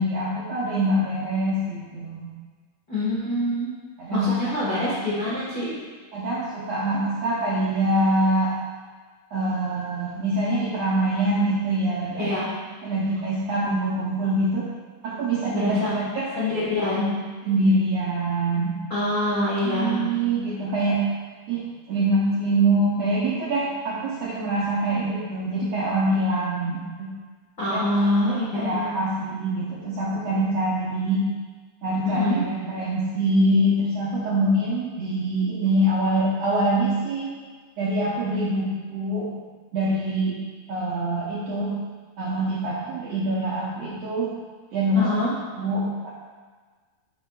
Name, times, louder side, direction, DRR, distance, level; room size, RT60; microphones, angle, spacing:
voice 1, 0.0-2.3 4.0-4.8 6.1-8.6 9.3-12.3 12.8-14.6 15.0-16.3 17.4-18.7 19.6-21.0 21.5-27.1 27.7-27.8 28.2-31.2 31.8-37.3 37.8-39.3 39.7-40.4 40.7-41.7 42.2-44.3 44.7-45.1 45.6-46.2, right 1 dB, 75° right, -7 dB, 1.5 m, -24 dB
voice 2, 2.9-3.8 4.1-5.8 12.1-12.5 15.5-15.9 16.4-17.2 18.9-20.0 27.6-28.9 32.0-32.4 44.9-45.3, left 1 dB, 70° left, -10 dB, 0.9 m, -25 dB
10.0 x 5.6 x 2.3 m, 1.4 s
omnidirectional pair, 4.2 m